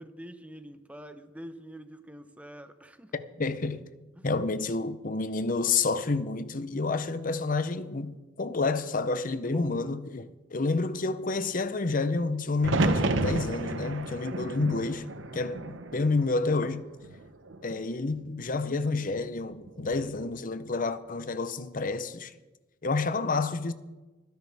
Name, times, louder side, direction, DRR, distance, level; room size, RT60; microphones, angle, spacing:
voice 1, 0.0-3.1 4.2-4.3 9.2-9.7, equal, 5° right, 0.8 m, -46 dB
voice 2, 3.1-3.8 4.2-16.8 17.6-22.3 22.8-23.7, left 3 dB, 45° left, 0.8 m, -29 dB
sound 1, 12.6-16.7 17.0-17.8 19.7-20.1, right 2 dB, 85° right, 0.9 m, -31 dB
24.5 x 10.5 x 3.5 m
head